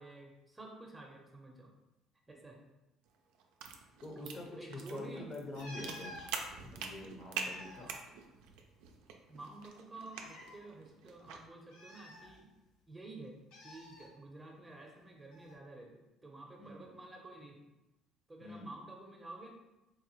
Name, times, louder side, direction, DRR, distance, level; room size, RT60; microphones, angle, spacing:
voice 1, 0.0-1.7 2.3-2.6 4.2-5.2 7.8-8.1 9.3-12.6 12.9-13.4 13.6-17.7 18.3-19.5, right 2 dB, 15° right, 1 dB, 0.7 m, -50 dB
sound 1, 3.1-11.5, right 6 dB, 80° right, 0.4 m, -46 dB
voice 2, 4.0-6.2 6.6-7.9 16.6-16.9 18.4-18.7, left 2 dB, 40° left, 1 dB, 0.8 m, -45 dB
sound 2, 5.5-6.3 7.2-8.9 9.1-9.2 10.1-10.6 11.7-12.8 13.5-14.1 15.3-15.5, left 1 dB, 80° left, 0.7 m, -51 dB
4.0 x 2.1 x 3.0 m, 0.97 s
supercardioid pair, 75°, 0 cm